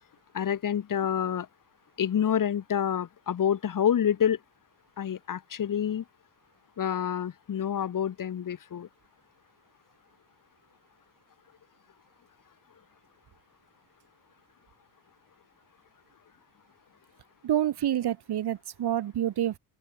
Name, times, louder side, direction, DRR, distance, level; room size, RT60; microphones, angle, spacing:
voice 1, 0.3-1.5 2.0-4.4 5.0-6.0 6.8-8.9, left 9 dB, 45° left, 2.0 m, -27 dB
voice 2, 17.4-19.6, right 11 dB, 55° right, 2.7 m, -28 dB
open air
supercardioid pair, 70°, 47 cm